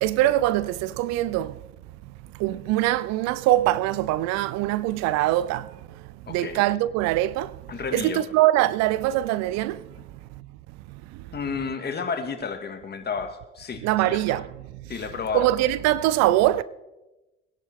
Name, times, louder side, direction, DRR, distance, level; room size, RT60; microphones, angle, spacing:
voice 1, 0.0-1.6 2.4-5.7 6.3-7.6 7.9-9.8 11.1-11.2 13.8-14.4 15.3-16.6, right 15 dB, 65° right, 0.6 m, -23 dB
voice 2, 6.3-6.6 7.7-8.3 11.3-14.4 14.9-15.5, left 5 dB, 35° left, 2.2 m, -32 dB
21.5 x 10.5 x 3.7 m
hypercardioid pair, 65°, 29 cm